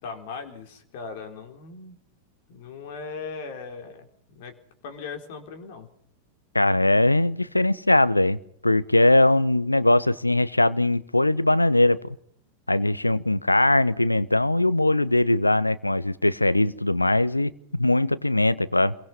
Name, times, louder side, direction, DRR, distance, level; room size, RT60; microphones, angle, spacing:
voice 1, 0.0-2.0 2.5-4.6 4.8-5.9, left 5 dB, 50° left, 5 dB, 4.1 m, -38 dB
voice 2, 6.5-12.1 12.7-18.9, left 2 dB, 85° left, 16 dB, 1.0 m, -21 dB
27.0 x 23.0 x 5.6 m, 0.68 s
figure-of-eight pair, 90°, 0 cm